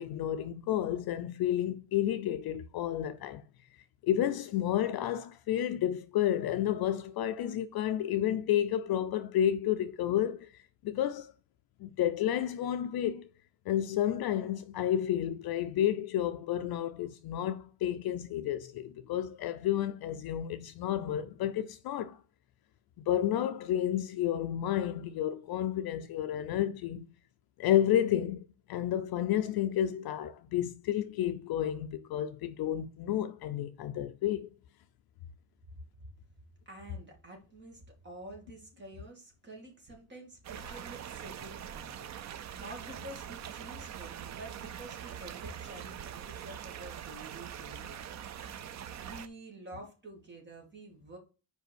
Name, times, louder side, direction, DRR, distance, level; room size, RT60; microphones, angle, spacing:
voice 1, 0.0-3.4 4.0-10.5 10.8-11.3 11.8-13.3 13.7-22.2 23.0-27.1 27.6-34.5, left 11 dB, 50° left, 0.6 m, -31 dB
voice 2, 36.7-42.1 42.3-48.6 49.0-51.2, right 1 dB, 20° right, 2.3 m, -49 dB
sound 1, 40.4-49.3, right 9 dB, 40° right, 0.4 m, -43 dB
5.5 x 5.0 x 6.2 m
cardioid pair, 180°, 48 cm